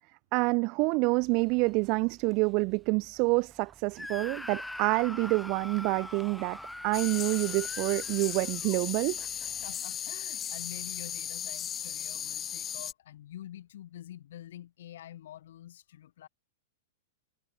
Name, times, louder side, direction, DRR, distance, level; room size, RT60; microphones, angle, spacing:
voice 1, 0.3-6.6 6.8-9.2, right 29 dB, 40° right, 0.4 m, -27 dB
Dog, 1.2-9.8, right 5 dB, 15° right, 2.2 m, -58 dB
Screaming, 4.0-8.8, left 1 dB, 5° left, 2.7 m, -42 dB
sound 1, 6.9-12.9, left 9 dB, 20° left, 1.3 m, -36 dB
voice 2, 9.6-16.3, left 12 dB, 70° left, 2.2 m, -47 dB
hypercardioid pair, 140°, 0 cm